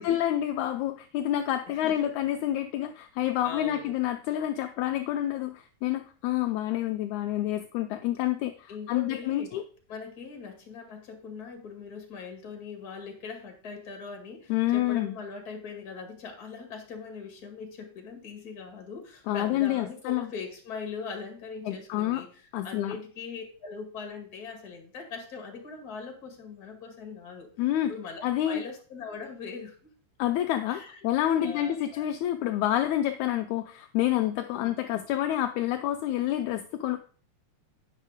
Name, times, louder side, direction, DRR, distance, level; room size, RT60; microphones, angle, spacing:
voice 1, 0.0-9.6 14.5-15.2 19.3-20.3 21.7-22.3 22.5-23.0 27.6-27.9 28.2-28.6 30.2-37.0, left 12 dB, 80° left, 7 dB, 1.8 m, -28 dB
voice 2, 1.7-2.1 3.4-4.0 8.7-9.5 9.9-22.3 22.6-27.5 27.9-29.9 30.7-31.0 31.3-32.0 34.5-34.8, left 5 dB, 35° left, 3 dB, 2.0 m, -41 dB
8.9 x 5.7 x 4.9 m, 0.42 s
omnidirectional pair, 3.6 m